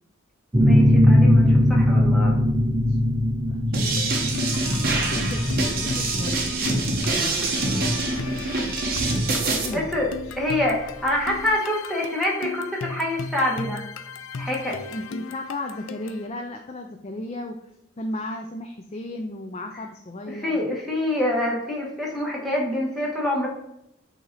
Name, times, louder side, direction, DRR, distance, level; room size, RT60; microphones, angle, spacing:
sound 1, 0.5-9.9, left 1 dB, 20° right, 0.6 m, -20 dB
voice 1, 0.6-2.4 9.7-10.1 10.4-13.8 14.4-14.8 20.3-23.5, left 1 dB, ahead, -4 dB, 1.4 m, -26 dB
voice 2, 2.7-3.1 3.5-4.3 4.9-6.9 7.7-7.9 9.3-9.9 10.2-10.3 14.9-17.6 18.0-20.6, left 1 dB, 30° left, 3 dB, 0.4 m, -35 dB
sound 2, 3.7-9.7, right 2 dB, 50° right, 1.1 m, -25 dB
sound 3, 4.0-16.3, left 5 dB, 85° left, 0.5 m, -37 dB
8.5 x 2.8 x 4.0 m, 0.81 s
head